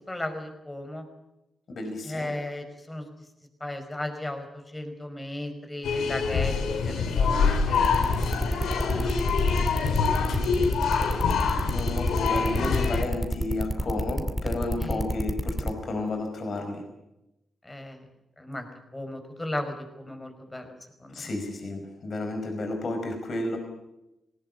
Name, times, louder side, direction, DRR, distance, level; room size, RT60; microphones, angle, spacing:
voice 1, 0.1-1.0 2.0-3.0 3.6-4.4 4.7-7.8 8.9-10.4 14.8-15.0 17.6-18.0 18.4-20.7 21.0-21.3, left 1 dB, 20° left, 7 dB, 5.1 m, -36 dB
voice 2, 1.7-2.3 11.7-16.9 21.1-23.6, left 2 dB, 55° left, 5 dB, 5.2 m, -32 dB
sound 1, 5.8-13.0, left 5 dB, 90° left, 3.1 m, -25 dB
sound 2, 7.7-15.7, equal, ahead, 2.6 m, -28 dB
19.5 x 18.5 x 9.9 m, 0.92 s
cardioid pair, 85°, 0 cm